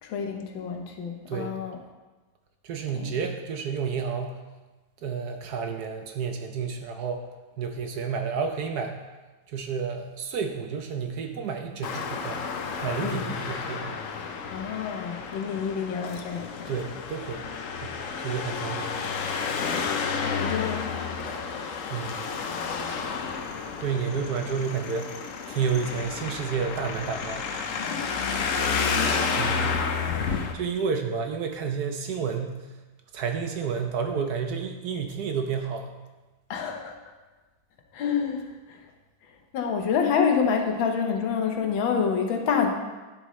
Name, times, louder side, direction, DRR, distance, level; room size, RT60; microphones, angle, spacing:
voice 1, 0.0-1.8 2.9-3.1 13.0-13.3 14.5-16.7 19.6-19.9 20.2-21.9 27.8-28.1 36.5-36.9 37.9-38.8 39.5-42.7, left 6 dB, 90° left, 3 dB, 1.7 m, -28 dB
voice 2, 2.6-4.4 5.0-7.2 7.6-9.0 9.5-12.4 12.8-13.9 16.7-17.5 17.8-19.0 21.9-22.3 23.8-25.2 25.5-27.5 28.2-28.3 28.9-29.8 30.3-32.6 33.1-36.0, right 6 dB, 65° right, 5 dB, 1.1 m, -31 dB
Traffic noise roadway noise, 11.8-30.5, left 5 dB, 65° left, 0.8 m, -31 dB
9.8 x 7.8 x 3.1 m, 1.2 s
omnidirectional pair, 2.1 m